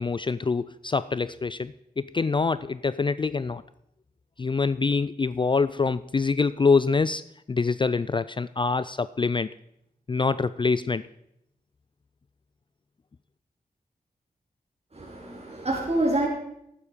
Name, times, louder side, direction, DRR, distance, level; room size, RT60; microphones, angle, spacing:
voice 1, 0.0-3.6 4.4-7.2 7.5-9.5 10.1-11.0, left 4 dB, 30° left, 16 dB, 0.4 m, -25 dB
voice 2, 14.9-16.3, right 2 dB, 40° right, -3 dB, 3.3 m, -26 dB
11.5 x 9.9 x 5.1 m, 0.79 s
cardioid pair, 45°, 16 cm